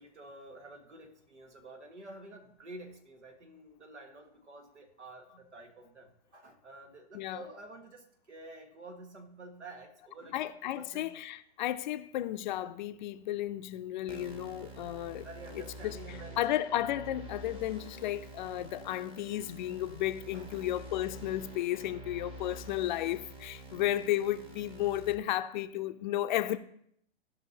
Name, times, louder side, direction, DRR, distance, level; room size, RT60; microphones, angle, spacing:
voice 1, 0.0-11.2 15.2-16.7 20.3-20.9 23.7-23.9, right 2 dB, 80° right, 1.7 m, -50 dB
voice 2, 7.1-7.5 10.3-15.3 15.6-26.6, left 13 dB, 40° left, 0.6 m, -33 dB
sound 1, 14.1-25.1, right 2 dB, 15° right, 1.1 m, -47 dB
17.0 x 5.7 x 2.8 m
hypercardioid pair, 120°, 34 cm